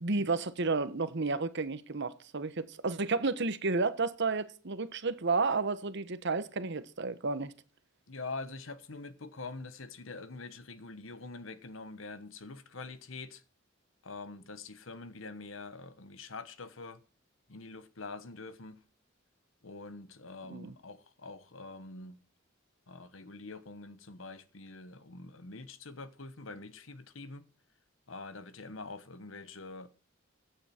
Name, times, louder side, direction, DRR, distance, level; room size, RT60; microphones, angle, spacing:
voice 1, 0.0-7.5 20.5-20.7, right 3 dB, 60° right, 1.1 m, -31 dB
voice 2, 8.1-13.4 14.0-17.0 17.5-18.8 19.6-22.2 22.9-27.4 28.1-29.9, left 3 dB, 70° left, 1.2 m, -45 dB
15.5 x 8.9 x 4.4 m
head